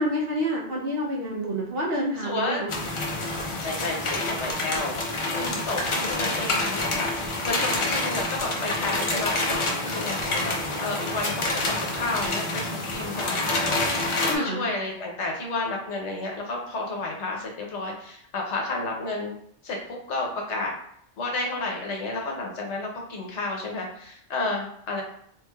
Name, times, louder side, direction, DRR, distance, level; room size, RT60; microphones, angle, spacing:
voice 1, 0.0-2.8 14.3-14.7, equal, 55° right, -3 dB, 0.8 m, -28 dB
voice 2, 2.2-2.6 3.6-10.5 10.8-19.3 19.6-20.7 21.2-25.0, left 2 dB, 70° left, 0 dB, 1.0 m, -31 dB
sound 1, 2.7-14.4, left 2 dB, 55° left, 0.3 m, -27 dB
3.3 x 3.2 x 2.2 m, 0.67 s
omnidirectional pair, 1.3 m